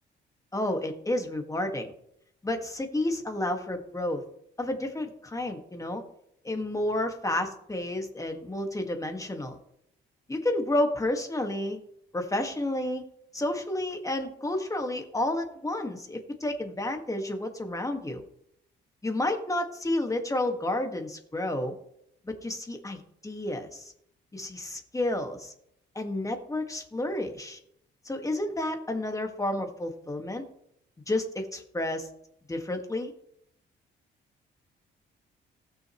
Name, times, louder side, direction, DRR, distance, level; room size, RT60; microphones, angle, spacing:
voice 1, 0.5-1.9 2.4-4.2 4.6-6.0 6.4-9.6 10.3-11.8 12.1-13.0 13.3-18.2 19.0-21.8 22.2-23.9 24.3-25.5 26.0-27.6 28.1-30.4 31.1-32.1 32.5-33.1, left 1 dB, 15° left, 4 dB, 1.8 m, -30 dB
18.5 x 6.5 x 3.1 m, 0.74 s
cardioid pair, 90°, 20 cm